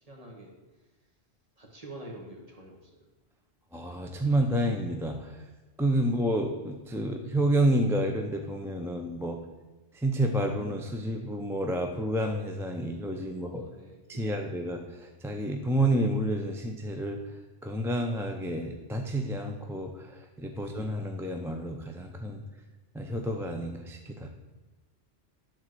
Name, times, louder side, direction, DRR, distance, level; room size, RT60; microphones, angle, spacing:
voice 1, 0.1-0.5 1.6-2.8 13.5-14.4, right 1 dB, 35° right, -1 dB, 1.9 m, -47 dB
voice 2, 3.7-5.4 5.8-9.4 10.0-13.6 14.1-17.2 17.6-22.4 22.9-24.3, right 1 dB, 5° right, 2 dB, 0.6 m, -29 dB
11.0 x 4.4 x 7.8 m, 1.2 s
omnidirectional pair, 1.1 m